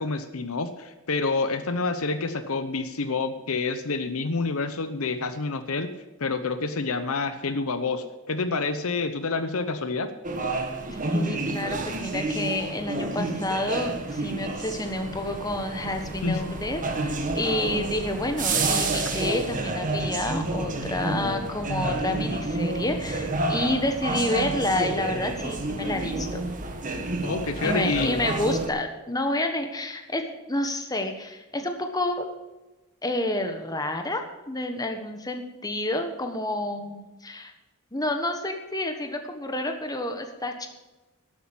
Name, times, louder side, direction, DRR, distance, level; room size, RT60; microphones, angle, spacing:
voice 1, 0.0-5.9 6.2-10.1 16.2-16.6 27.2-28.2, left 3 dB, 65° left, 10 dB, 0.8 m, -28 dB
sound 1, 10.2-28.7, right 2 dB, 35° right, 1.5 m, -29 dB
voice 2, 10.9-26.4 27.6-30.2 30.5-32.2 33.0-37.5 37.9-40.7, left 1 dB, 15° left, 5 dB, 1.3 m, -29 dB
12.0 x 8.5 x 7.3 m, 1.1 s
head